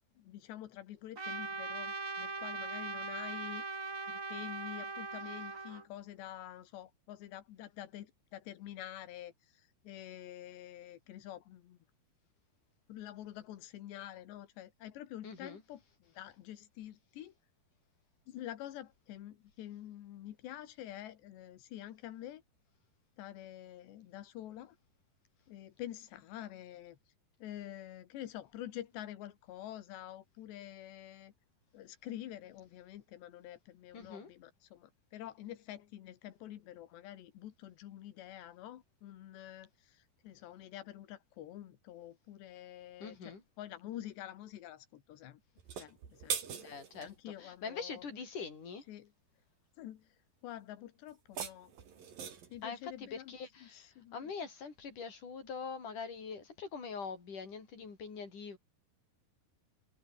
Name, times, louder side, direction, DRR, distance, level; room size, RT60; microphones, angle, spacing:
voice 1, 0.2-3.7 4.1-11.8 12.9-17.3 18.3-22.4 23.2-24.8 25.5-27.0 27.4-31.3 31.7-45.4 45.7-48.0 48.9-49.1 49.8-50.2 50.4-51.7 52.5-53.3 53.6-54.3, left 12 dB, 90° left, 3.9 m, -47 dB
Trumpet, 1.2-5.8, right 3 dB, 20° right, 2.7 m, -40 dB
voice 2, 15.2-15.6 33.9-34.3 43.0-43.4 46.6-47.1 47.4-48.8 52.6-58.6, left 5 dB, 50° left, 6.7 m, -43 dB
sound 1, 45.6-47.1 51.1-52.6, right 7 dB, 60° right, 5.1 m, -41 dB
omnidirectional pair, 4.8 m